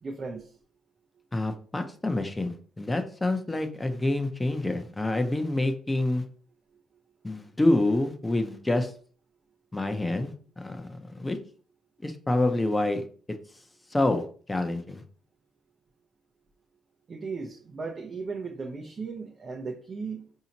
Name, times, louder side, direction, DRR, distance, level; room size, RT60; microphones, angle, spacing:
voice 1, 0.0-0.6 17.1-20.3, right 4 dB, 40° right, 1 dB, 0.6 m, -36 dB
voice 2, 1.3-6.2 7.2-8.9 9.7-11.4 12.0-13.0 13.9-14.2 14.5-15.0, left 2 dB, 15° left, 7 dB, 0.6 m, -27 dB
4.8 x 2.7 x 2.9 m, 0.43 s
cardioid pair, 90°, 0 cm